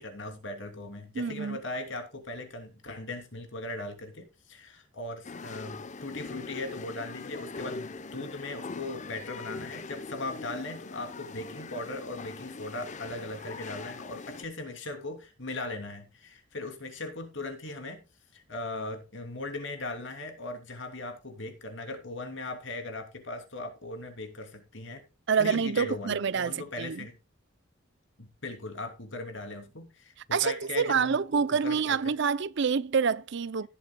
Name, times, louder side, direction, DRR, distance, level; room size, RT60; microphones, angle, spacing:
voice 1, 0.0-18.0 18.3-25.0 25.4-27.2 28.2-32.1, left 2 dB, 65° left, 2.9 m, -39 dB
voice 2, 1.2-1.6 25.3-27.0 30.3-33.7, right 6 dB, 60° right, 0.5 m, -27 dB
sound 1, 5.2-14.4, left 4 dB, 40° left, 0.8 m, -42 dB
17.0 x 8.1 x 2.3 m
head